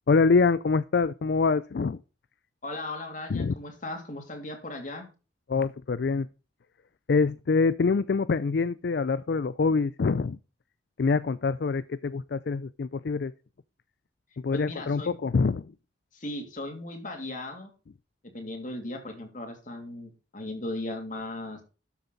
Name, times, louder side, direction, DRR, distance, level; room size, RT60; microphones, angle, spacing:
voice 1, 0.1-2.0 3.3-3.5 5.5-6.3 7.1-10.4 11.0-13.3 14.4-15.7, left 4 dB, 60° left, 15 dB, 0.4 m, -25 dB
voice 2, 2.6-5.1 14.5-15.2 16.1-17.7 18.3-21.6, left 2 dB, 45° left, 3 dB, 2.9 m, -37 dB
12.5 x 7.1 x 4.1 m, 0.33 s
head